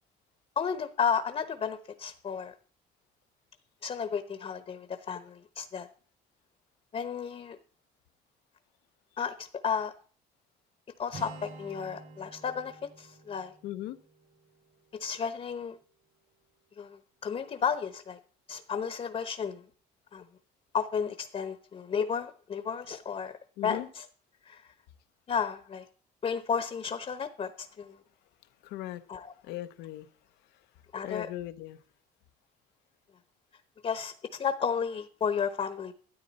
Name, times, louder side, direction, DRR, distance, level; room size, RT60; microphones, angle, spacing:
voice 1, 0.6-2.5 3.8-5.9 6.9-7.6 9.2-9.9 11.0-13.5 15.0-15.8 16.8-18.2 18.5-19.6 20.1-20.2 20.7-23.4 23.6-24.1 24.4-24.7 25.3-25.9 26.2-28.0 29.1-29.3 30.9-31.3 33.8-35.9, left 7 dB, 40° left, 1.0 m, -33 dB
Acoustic guitar, 11.1-15.0, right 3 dB, 65° right, 5.0 m, -49 dB
voice 2, 13.6-14.0 23.6-23.9 28.6-29.0 29.4-30.1 31.0-31.8, left 14 dB, 90° left, 0.9 m, -38 dB
13.0 x 9.6 x 4.1 m
cardioid pair, 110°, 17 cm